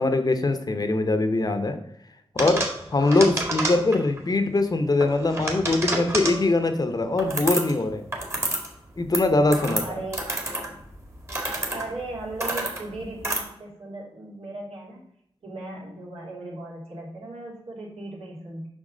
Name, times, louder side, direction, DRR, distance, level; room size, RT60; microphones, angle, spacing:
voice 1, 0.0-1.8 2.3-8.0 9.0-10.0, left 2 dB, 40° left, 7 dB, 0.9 m, -22 dB
sound 1, 2.4-4.2 5.0-6.5 7.2-7.8 8.1-8.7 9.0-13.4, right 1 dB, 25° right, 1.8 m, -29 dB
voice 2, 9.4-10.3 11.7-15.1 15.4-18.7, right 2 dB, 70° right, -3 dB, 3.0 m, -37 dB
7.3 x 5.9 x 3.9 m, 0.73 s
wide cardioid pair, 110°, 10 cm